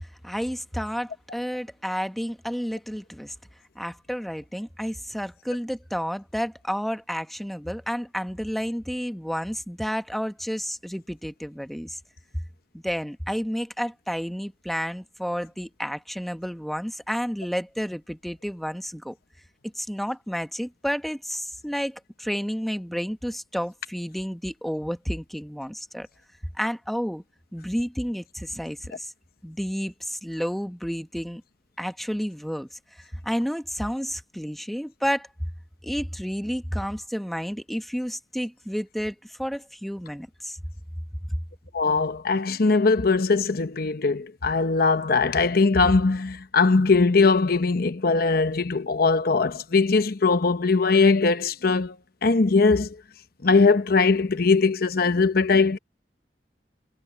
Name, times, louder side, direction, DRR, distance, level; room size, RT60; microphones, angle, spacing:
voice 1, 0.2-3.3 3.7-12.0 12.7-19.2 19.8-26.1 26.5-27.2 27.5-29.1 29.4-31.4 31.8-32.7 33.2-35.3 35.8-40.6, equal, ahead, 1.1 m, -31 dB
voice 2, 41.7-51.9 52.2-52.9 53.4-55.8, left 4 dB, 60° left, 0.9 m, -20 dB
head